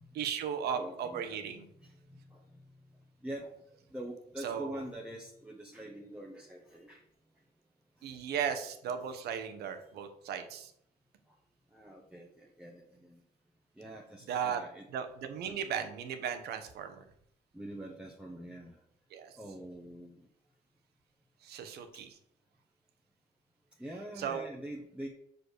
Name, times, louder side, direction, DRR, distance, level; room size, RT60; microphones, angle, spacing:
voice 1, 0.1-1.6 4.4-4.8 8.0-10.7 14.3-14.6 14.9-17.0 19.1-19.3 21.4-22.1 24.2-24.4, right 8 dB, 70° right, 8 dB, 1.2 m, -36 dB
voice 2, 0.7-1.4 1.8-2.4 3.2-3.6 3.9-7.0 8.0-8.2 9.1-9.2 11.7-13.2 13.7-14.9 15.4-15.6 17.5-18.8 19.4-20.3 23.8-25.1, right 1 dB, 5° right, -1 dB, 1.2 m, -45 dB
6.3 x 5.3 x 6.5 m, 0.71 s
cardioid pair, 110°, 17 cm